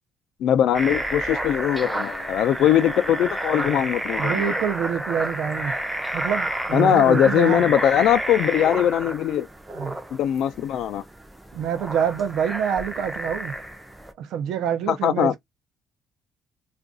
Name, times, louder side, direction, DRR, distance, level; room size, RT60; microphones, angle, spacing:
voice 1, 0.4-4.5 6.7-9.5 10.1-11.0 14.9-15.3, left 10 dB, 70° left, 0.5 m, -21 dB
sound 1, 0.7-14.1, right 1 dB, 10° right, 0.5 m, -30 dB
voice 2, 4.2-5.7 6.1-7.6 9.7-10.0 11.5-13.6 14.2-15.4, right 8 dB, 80° right, 0.7 m, -26 dB
2.5 x 2.3 x 3.7 m
cardioid pair, 155°, 0 cm